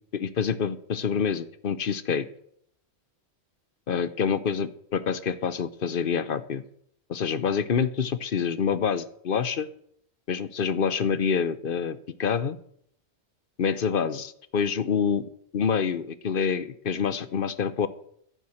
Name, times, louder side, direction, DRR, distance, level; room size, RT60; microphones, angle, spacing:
voice 1, 0.0-2.3 3.9-6.6 7.1-9.7 10.3-12.6 13.6-15.2 15.5-17.9, left 6 dB, 55° left, 14 dB, 0.9 m, -27 dB
10.5 x 8.6 x 7.8 m, 0.68 s
omnidirectional pair, 1.1 m